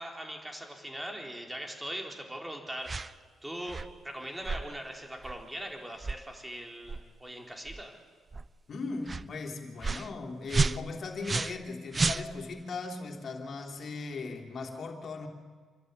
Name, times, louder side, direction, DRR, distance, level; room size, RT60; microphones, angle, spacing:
voice 1, 0.0-3.0 3.4-7.9, right 1 dB, 10° right, 4.3 m, -41 dB
sound 1, 2.8-3.1 3.7-3.9 4.4-4.6 5.2-5.4 6.0-6.2 6.9-7.0 7.7-7.8 8.3-8.5 9.1-9.2 9.8-10.1 10.5-11.7 11.9-12.6, right 4 dB, 30° right, 0.5 m, -31 dB
voice 2, 8.7-15.3, left 3 dB, 50° left, 3.5 m, -38 dB
28.0 x 12.0 x 9.6 m
cardioid pair, 90°, 0 cm